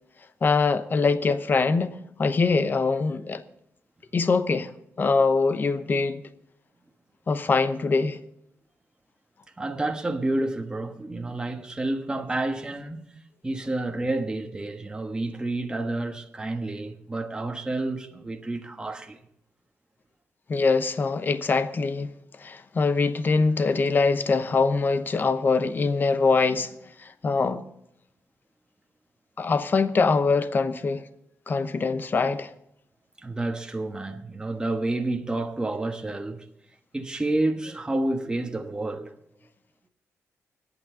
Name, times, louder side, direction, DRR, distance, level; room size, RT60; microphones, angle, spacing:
voice 1, 0.4-3.4 4.1-4.7 5.0-6.2 7.3-8.2 20.5-22.1 22.4-26.7 27.0-27.6 29.4-31.0 31.5-32.5, left 4 dB, 40° left, 0.9 m, -23 dB
voice 2, 9.6-13.0 13.4-19.2 33.2-36.5 36.9-39.1, right 2 dB, 15° right, 1.3 m, -29 dB
25.5 x 9.0 x 3.8 m
cardioid pair, 100°, 5 cm